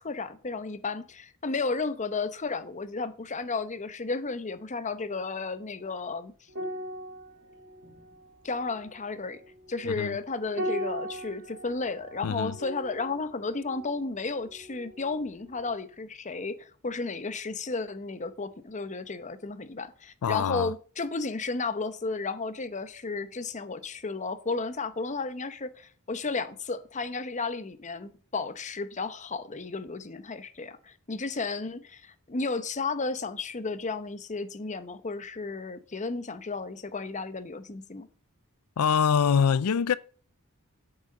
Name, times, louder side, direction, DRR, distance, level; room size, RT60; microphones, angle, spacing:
voice 1, 0.0-6.3 8.4-9.4 9.7-38.1, left 3 dB, 35° left, 0.8 m, -33 dB
sound 1, 6.5-15.2 15.5-15.7, equal, 55° right, 2.0 m, -40 dB
voice 2, 9.8-10.2 12.2-12.5 20.2-20.7 38.8-40.0, left 7 dB, 90° left, 0.4 m, -24 dB
8.1 x 6.6 x 7.3 m
head